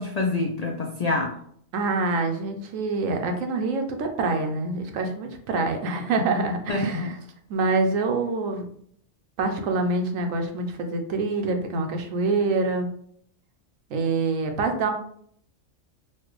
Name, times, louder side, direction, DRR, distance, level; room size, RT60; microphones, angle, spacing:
voice 1, 0.0-1.3 6.7-7.1, left 2 dB, 80° left, 1 dB, 0.3 m, -26 dB
voice 2, 1.7-7.1 7.5-8.6 9.4-12.9 13.9-14.9, right 3 dB, 90° right, 5 dB, 1.1 m, -26 dB
4.3 x 2.4 x 3.0 m, 0.63 s
omnidirectional pair, 1.3 m